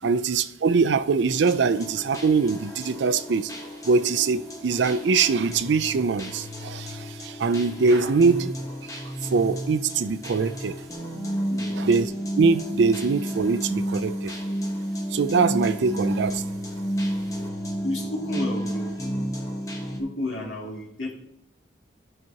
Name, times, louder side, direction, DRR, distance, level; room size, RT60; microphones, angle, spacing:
voice 1, 0.0-3.5 3.8-8.5 9.3-10.8 11.8-12.1 12.4-14.3 15.1-16.4, right 4 dB, 70° right, 0.4 m, -23 dB
sound 1, 1.3-20.0, equal, 20° left, 1.0 m, -32 dB
voice 2, 11.5-11.8 17.8-19.0 20.0-21.1, left 1 dB, 85° left, 2.2 m, -31 dB
12.0 x 5.9 x 2.8 m
head